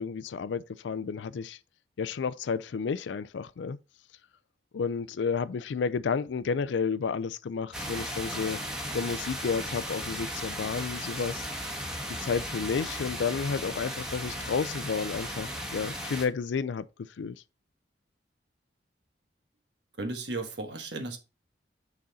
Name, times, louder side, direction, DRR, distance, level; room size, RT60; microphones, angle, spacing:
voice 1, 0.0-1.6 2.0-3.8 4.7-8.6 8.9-11.4 12.1-16.9 17.2-17.4, left 5 dB, 90° left, 0.4 m, -31 dB
sound 1, 7.7-16.3, equal, 5° right, 1.4 m, -36 dB
voice 2, 20.0-21.2, right 2 dB, 70° right, 1.3 m, -35 dB
6.2 x 4.1 x 4.0 m
head